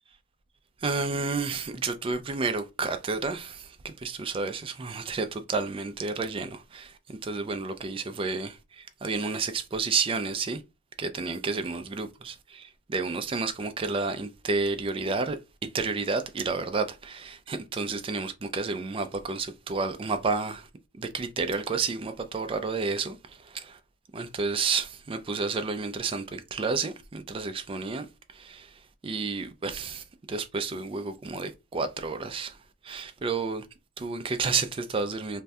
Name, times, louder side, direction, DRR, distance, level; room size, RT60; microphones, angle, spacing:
voice 1, 0.8-10.6 11.0-20.7 21.0-23.8 24.1-32.6 32.8-33.7 34.0-35.4, right 4 dB, 25° right, 0.3 m, -31 dB
2.6 x 2.1 x 3.4 m
head